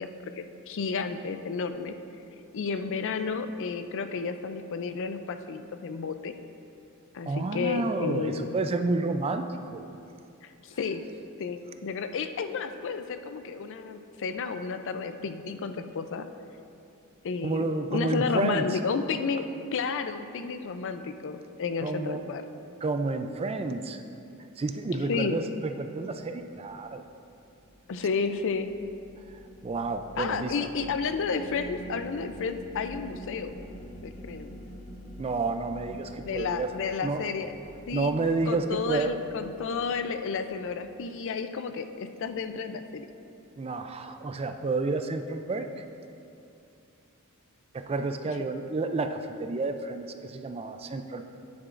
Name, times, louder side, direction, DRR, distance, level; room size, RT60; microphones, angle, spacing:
voice 1, 0.0-1.9 2.5-6.3 7.1-8.6 10.4-11.0 11.4-16.2 17.2-19.5 19.7-22.4 25.1-25.4 27.9-28.7 30.2-33.6 34.0-34.6 36.2-37.5 37.9-38.1 38.5-43.1, left 5 dB, 60° left, 9 dB, 0.4 m, -32 dB
voice 2, 7.2-9.8 17.4-18.8 21.8-22.2 22.8-24.0 24.6-27.0 29.6-30.5 35.2-36.7 37.0-37.2 37.9-39.1 43.6-45.7 47.7-51.3, right 3 dB, 25° right, 7 dB, 0.4 m, -30 dB
sound 1, 26.7-41.0, equal, 35° left, 0.9 m, -47 dB
9.7 x 9.6 x 2.5 m, 2.6 s
head